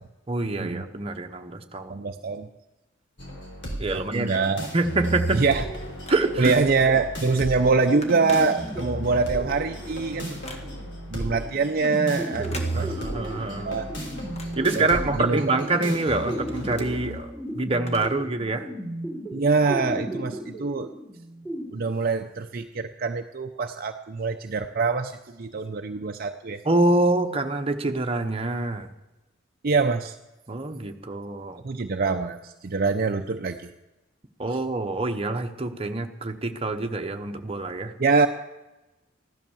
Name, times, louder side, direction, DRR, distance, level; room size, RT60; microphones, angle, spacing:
voice 1, 0.3-2.0 3.8-4.4 4.7-5.4 6.1-6.5 12.7-13.8 14.6-18.7 26.6-28.9 30.5-31.6 34.4-37.9, right 2 dB, 30° right, 5 dB, 1.0 m, -26 dB
voice 2, 1.9-2.5 4.1-4.7 5.3-5.6 6.4-10.4 11.1-12.9 13.6-13.9 14.8-14.9 15.2-15.4 19.3-20.9 21.7-26.6 29.6-30.2 31.6-33.7 38.0-38.3, right 4 dB, 50° right, 5 dB, 0.6 m, -24 dB
sound 1, 3.2-17.2, right 1 dB, 60° left, 3.9 m, -35 dB
Telephone, 5.6-6.6 7.1-7.3 7.6-9.1 9.5-11.0 12.2-13.3 13.6-15.4 15.8-18.4 18.7-18.8 19.6-19.7, left 1 dB, 35° left, 1.8 m, -44 dB
sound 2, 7.9-21.6, right 1 dB, 10° left, 3.4 m, -36 dB
15.0 x 12.0 x 7.2 m, 1.0 s
head